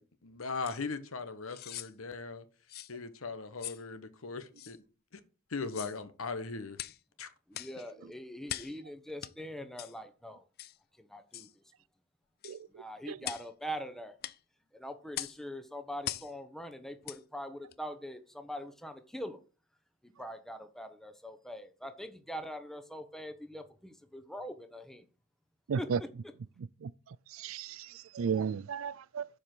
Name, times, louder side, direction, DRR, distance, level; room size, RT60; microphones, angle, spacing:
voice 1, 0.0-2.5 2.9-4.8 5.1-5.2 5.5-6.8 7.2-7.3, left 4 dB, 85° left, 1.0 m, -39 dB
sound 1, 0.6-0.8 1.5-1.9 2.7-2.9 3.6-3.8 4.6-4.7 5.6-6.0 6.7-7.0 7.5-7.8 8.5-8.8 9.2-9.3 9.8-9.9 10.6-10.8 11.3-11.5 12.4-12.6 13.2-13.5 14.2-14.4 15.1-15.4 16.0-16.3 17.0-17.2 17.7-17.8, left 13 dB, 50° left, 0.4 m, -41 dB
voice 2, 7.5-10.4 11.0-11.5 12.7-14.2 14.7-19.4 20.0-25.0 25.8-26.1, equal, ahead, 0.9 m, -43 dB
voice 3, 12.4-13.2 25.7-26.0 26.8-26.9 27.3-29.3, right 6 dB, 75° right, 0.4 m, -34 dB
7.0 x 5.0 x 5.9 m
head